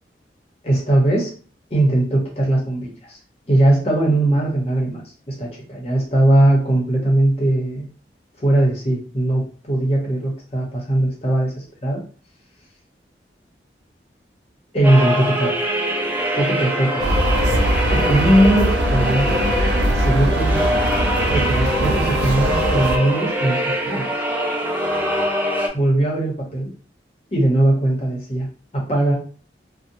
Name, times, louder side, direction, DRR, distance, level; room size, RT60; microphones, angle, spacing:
voice 1, 0.6-1.3 1.7-3.2 3.5-7.9 8.4-12.0 14.7-15.5 16.3-17.0 17.9-19.4 19.9-20.7 21.3-24.1 25.7-26.7 27.3-28.5 28.7-29.1, right 1 dB, 35° left, -2 dB, 0.8 m, -19 dB
sound 1, 14.8-25.7, equal, 10° right, 0.4 m, -23 dB
sound 2, 17.0-23.0, right 1 dB, 75° right, 0.4 m, -21 dB
2.8 x 2.1 x 2.6 m, 0.39 s
head